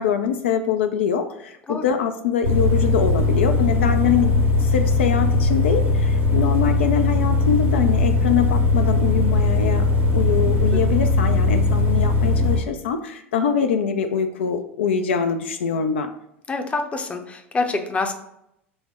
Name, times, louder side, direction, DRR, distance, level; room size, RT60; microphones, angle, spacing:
voice 1, 0.0-4.3 4.6-9.9 10.1-16.1, left 7 dB, 70° left, 7 dB, 0.3 m, -23 dB
sound 1, 2.4-12.6, left 2 dB, 80° right, 1.4 m, -19 dB
voice 2, 16.5-18.1, left 3 dB, 20° left, 6 dB, 0.6 m, -26 dB
5.5 x 2.1 x 4.2 m, 0.79 s
figure-of-eight pair, 80°, 7 cm